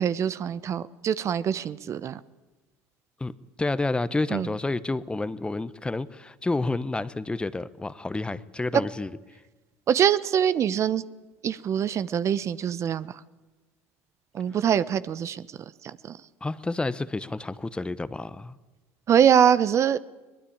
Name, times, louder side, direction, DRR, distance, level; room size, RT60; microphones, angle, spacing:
voice 1, 0.0-2.2 4.3-4.5 8.7-8.8 9.9-11.0 11.4-13.2 14.3-15.5 15.8-16.2 19.1-20.0, right 9 dB, 45° right, 16 dB, 0.9 m, -23 dB
voice 2, 3.6-9.1 16.4-18.6, left 2 dB, 15° left, 16 dB, 1.1 m, -29 dB
22.5 x 19.5 x 8.7 m, 1.2 s
hypercardioid pair, 75°, 7 cm